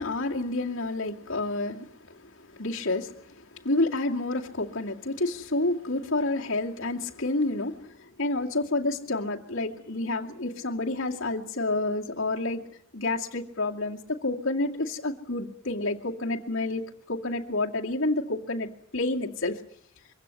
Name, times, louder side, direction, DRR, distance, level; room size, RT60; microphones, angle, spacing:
voice 1, 0.0-12.6 12.9-16.8 17.1-19.6, left 2 dB, 65° left, -2 dB, 2.4 m, -29 dB
24.0 x 16.5 x 9.7 m, 0.65 s
head